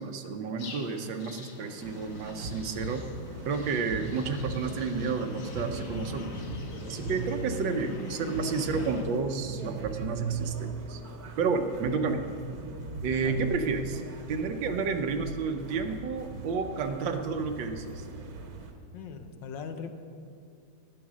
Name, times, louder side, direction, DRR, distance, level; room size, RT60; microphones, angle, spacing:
voice 1, 0.0-3.1 3.4-6.3 6.9-11.0 11.4-12.2 13.0-14.0 14.3-18.0, right 4 dB, 75° right, 7 dB, 1.6 m, -31 dB
sound 1, 0.6-9.0, left 3 dB, 50° left, 1.3 m, -44 dB
sound 2, 1.8-18.7, right 3 dB, 55° right, 1.5 m, -39 dB
voice 2, 18.9-19.9, left 6 dB, 75° left, 7 dB, 1.5 m, -40 dB
12.0 x 9.7 x 6.2 m, 2.6 s
omnidirectional pair, 2.1 m